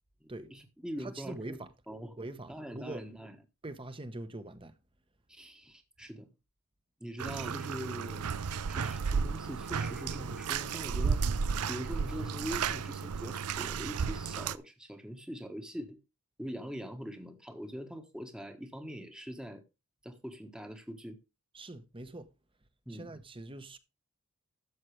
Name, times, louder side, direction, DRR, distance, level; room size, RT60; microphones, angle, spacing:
voice 1, 0.2-1.6 1.9-2.2 2.5-3.4 5.3-6.3 7.0-8.2 8.7-11.2 11.7-16.0 16.4-19.6 20.0-21.2 22.9-23.1, equal, 5° right, 1.3 m, -42 dB
voice 2, 1.0-1.7 2.2-3.1 3.6-4.7 21.5-22.3 22.9-23.8, right 2 dB, 25° right, 1.1 m, -43 dB
Bathtub (filling or washing), 7.2-14.6, right 5 dB, 90° right, 0.6 m, -33 dB
12.5 x 7.5 x 3.2 m
head